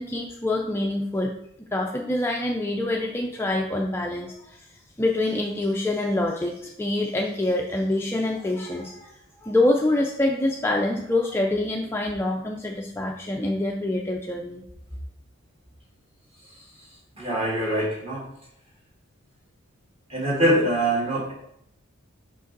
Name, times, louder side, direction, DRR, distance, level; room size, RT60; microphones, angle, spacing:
voice 1, 0.0-1.3 1.7-4.6 5.0-14.6, left 1 dB, 10° left, 0 dB, 0.3 m, -26 dB
voice 2, 17.2-18.3 20.1-21.3, right 1 dB, 25° right, -4 dB, 1.8 m, -23 dB
5.1 x 5.1 x 3.9 m, 0.76 s
head